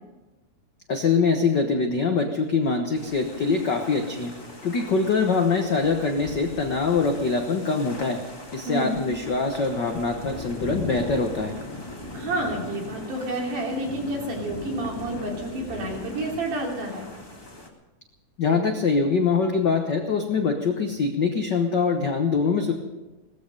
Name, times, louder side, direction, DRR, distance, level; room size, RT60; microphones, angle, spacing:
voice 1, 0.9-4.3 4.6-8.2 8.5-11.5 18.4-22.7, left 4 dB, 70° left, 4 dB, 1.0 m, -23 dB
sound 1, 2.9-17.7, left 1 dB, 10° left, 1.2 m, -39 dB
voice 2, 8.6-9.0 12.1-17.1, right 1 dB, 75° right, -1 dB, 4.7 m, -29 dB
18.5 x 14.0 x 5.3 m, 1.1 s
omnidirectional pair, 3.7 m